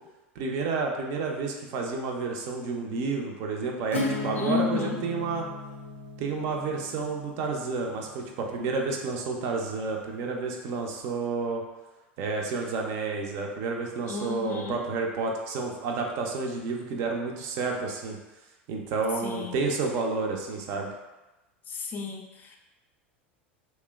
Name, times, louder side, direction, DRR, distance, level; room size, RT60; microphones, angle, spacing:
voice 1, 0.4-5.5 6.2-11.6 12.2-18.2 18.7-20.9, right 4 dB, 50° right, 1 dB, 0.4 m, -30 dB
Acoustic guitar / Strum, 3.9-9.4, left 2 dB, 90° left, 0.5 m, -36 dB
voice 2, 4.4-5.0 14.1-14.8 19.2-19.6 21.7-22.6, left 5 dB, 30° left, 2 dB, 0.3 m, -32 dB
2.9 x 2.0 x 2.3 m, 1.1 s
hypercardioid pair, 85°, 6 cm